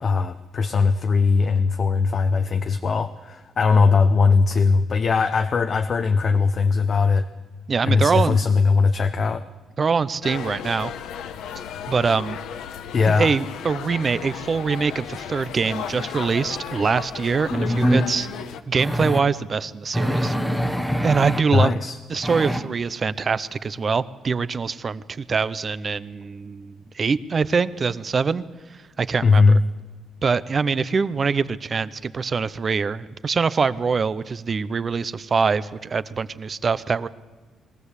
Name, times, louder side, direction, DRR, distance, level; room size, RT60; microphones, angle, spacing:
voice 1, 0.0-7.3 7.8-9.4 12.9-13.4 21.5-22.0 29.2-29.6, left 4 dB, 35° left, 8 dB, 0.7 m, -19 dB
voice 2, 7.7-8.4 9.8-10.9 11.9-12.4 13.0-18.3 18.7-20.3 21.0-21.8 22.1-28.4 29.0-29.6 30.2-37.1, right 5 dB, 30° right, 16 dB, 0.6 m, -24 dB
sound 1, 10.2-18.6, left 8 dB, 90° left, 1.1 m, -35 dB
sound 2, 16.7-16.8 17.5-18.1 18.8-19.2 19.9-21.4 22.2-22.6, equal, ahead, 1.1 m, -23 dB
22.0 x 16.0 x 8.2 m, 1.3 s
cardioid pair, 155°, 0 cm